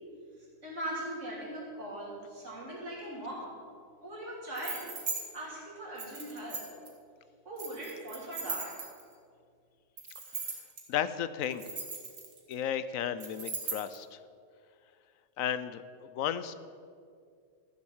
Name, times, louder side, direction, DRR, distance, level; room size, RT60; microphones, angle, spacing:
voice 1, 0.4-3.6 4.0-4.9 5.3-6.7 7.5-8.8, right 1 dB, 65° right, -4 dB, 3.5 m, -40 dB
sound 1, 4.6-5.2 6.0-6.9 7.6-9.1 10.0-10.8 11.4-12.5 13.2-14.0, right 4 dB, 85° right, 2.3 m, -38 dB
voice 2, 10.9-11.6 12.5-14.2 15.4-16.5, left 9 dB, 85° left, 13 dB, 1.0 m, -34 dB
13.5 x 7.4 x 7.2 m, 2.2 s
omnidirectional pair, 1.4 m